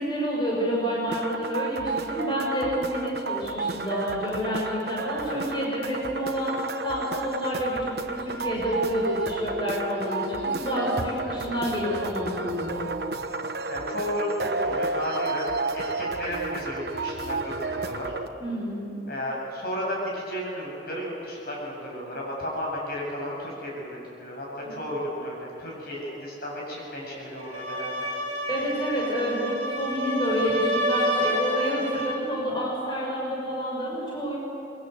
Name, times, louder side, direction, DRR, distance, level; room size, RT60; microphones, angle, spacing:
voice 1, 0.0-12.9 18.4-18.9 24.6-24.7 28.5-34.4, equal, 25° left, -4 dB, 6.3 m, -28 dB
sound 1, 1.1-18.3, right 3 dB, 65° right, 1.1 m, -32 dB
voice 2, 13.7-18.1 19.1-28.0, equal, 60° left, -2 dB, 7.9 m, -33 dB
sound 2, 27.4-32.3, equal, 40° right, 3.7 m, -29 dB
26.5 x 23.5 x 8.1 m, 2.8 s
head